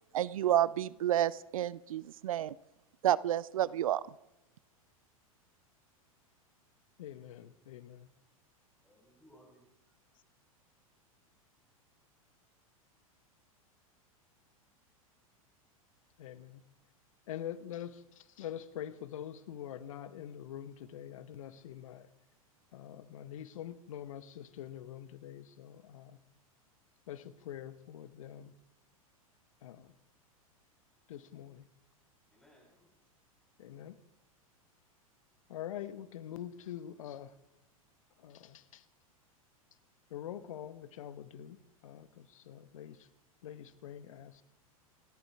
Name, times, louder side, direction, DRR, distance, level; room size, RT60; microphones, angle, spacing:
voice 1, 0.1-2.5 3.0-4.0, right 11 dB, 70° right, 21 dB, 0.6 m, -30 dB
voice 2, 7.0-8.1 16.2-16.7 17.3-22.1 22.7-26.2 27.1-28.6 29.6-30.0 31.1-31.7 33.6-34.0 35.5-37.4 38.2-38.8 40.1-43.1 43.4-44.4, left 10 dB, 65° left, 14 dB, 1.1 m, -45 dB
voice 3, 8.8-9.7 32.3-32.9, equal, 5° left, -7 dB, 7.4 m, -62 dB
28.5 x 13.0 x 3.5 m, 0.93 s
figure-of-eight pair, 95°, 18 cm